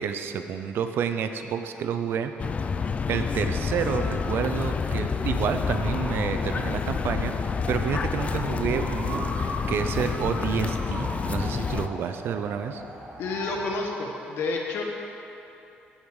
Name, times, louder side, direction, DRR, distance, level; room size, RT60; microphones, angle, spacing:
voice 1, 0.0-2.3 3.1-7.3 7.7-12.8, right 7 dB, 65° right, 8 dB, 0.6 m, -29 dB
sound 1, 2.4-11.9, left 5 dB, 35° left, 0.4 m, -28 dB
sound 2, 5.7-13.8, right 1 dB, 35° right, 1.7 m, -39 dB
sound 3, 8.9-9.2, right 3 dB, 85° right, 2.2 m, -49 dB
voice 2, 13.2-14.8, left 3 dB, 70° left, 1 dB, 1.4 m, -30 dB
14.5 x 5.2 x 4.8 m, 2.9 s
cardioid pair, 105°, 4 cm